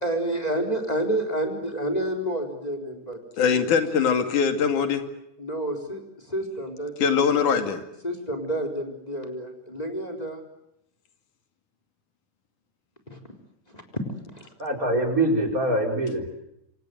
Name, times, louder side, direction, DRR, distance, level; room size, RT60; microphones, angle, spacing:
voice 1, 0.0-3.7 5.4-7.5 8.0-10.4 13.1-13.2 13.7-13.8 14.3-14.5, right 1 dB, 10° left, 6 dB, 4.1 m, -30 dB
voice 2, 3.4-5.0 7.0-7.8, left 6 dB, 85° left, 8 dB, 3.8 m, -22 dB
voice 3, 14.6-16.3, right 1 dB, 25° right, 3 dB, 4.9 m, -24 dB
27.0 x 26.0 x 8.0 m, 0.79 s
omnidirectional pair, 3.5 m